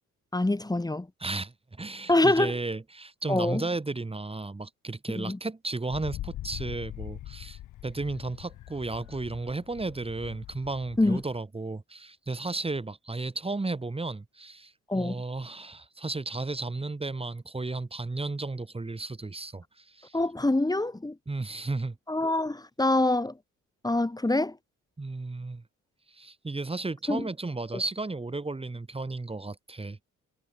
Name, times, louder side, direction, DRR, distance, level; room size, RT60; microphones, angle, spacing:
voice 1, 0.3-1.1 2.1-2.5 3.3-3.6 5.2-5.4 11.0-11.2 14.9-15.2 20.1-21.2 22.1-23.3 23.8-24.5 27.1-27.2, left 2 dB, 15° left, 3.5 m, -25 dB
voice 2, 1.2-20.2 21.3-22.0 25.0-25.6 26.1-30.1, right 3 dB, 20° right, 3.3 m, -34 dB
Wind, 5.9-11.4, left 14 dB, 85° left, 3.6 m, -42 dB
cardioid pair, 90°, 30 cm